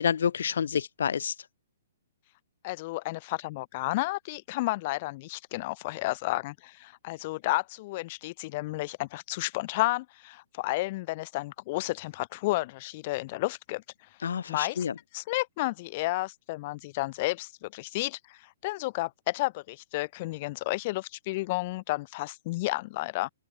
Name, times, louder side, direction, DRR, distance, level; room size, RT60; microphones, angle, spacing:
voice 1, 0.0-1.3 14.2-14.9, left 7 dB, 75° left, 0.6 m, -28 dB
voice 2, 2.6-13.8 14.3-14.9 15.1-23.3, left 20 dB, 40° left, 0.8 m, -32 dB
open air
hypercardioid pair, 145°, 0 cm